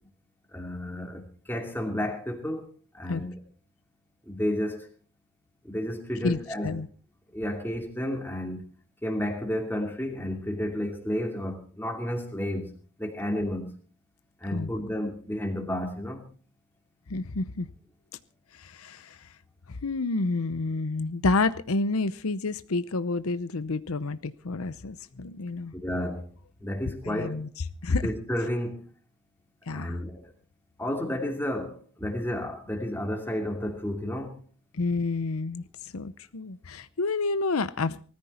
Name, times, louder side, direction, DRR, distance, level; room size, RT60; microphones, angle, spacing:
voice 1, 0.5-1.2 1.5-3.4 4.3-4.9 5.6-6.7 7.3-8.6 9.0-12.7 13.0-13.7 14.4-16.2 25.7-26.3 26.6-27.4 27.9-28.9 29.7-30.3 30.8-34.4, left 1 dB, 10° left, 2.7 m, -31 dB
voice 2, 6.2-6.9 14.5-14.7 17.1-17.7 18.5-19.2 19.7-25.7 27.0-27.5 27.8-28.0 29.7-30.0 34.7-38.0, left 3 dB, 80° left, 0.8 m, -29 dB
19.5 x 14.0 x 4.3 m
head